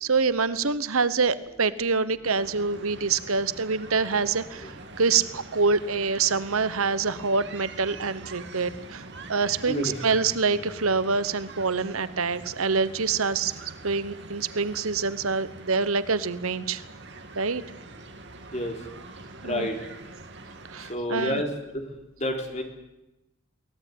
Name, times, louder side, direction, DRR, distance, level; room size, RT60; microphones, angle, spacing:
voice 1, 0.0-13.5 13.8-16.8 17.3-17.6 19.4-19.7 20.7-21.4, right 4 dB, 80° right, 15 dB, 1.1 m, -26 dB
sound 1, 2.2-21.0, right 2 dB, 55° right, 2.2 m, -44 dB
voice 2, 19.4-19.8 20.9-21.8 22.2-22.6, left 1 dB, 30° left, 3 dB, 3.7 m, -29 dB
23.5 x 17.5 x 9.4 m, 0.96 s
head